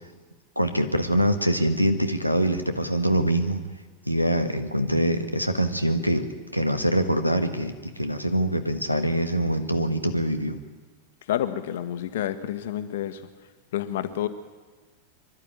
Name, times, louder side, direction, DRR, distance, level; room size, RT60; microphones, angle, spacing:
voice 1, 0.5-3.6 4.1-6.3 6.5-10.6, right 1 dB, 90° right, 8 dB, 1.4 m, -24 dB
voice 2, 11.3-13.2 13.7-14.3, left 11 dB, 55° left, 11 dB, 1.3 m, -29 dB
24.0 x 11.5 x 9.6 m, 1.4 s
figure-of-eight pair, 90°, 0 cm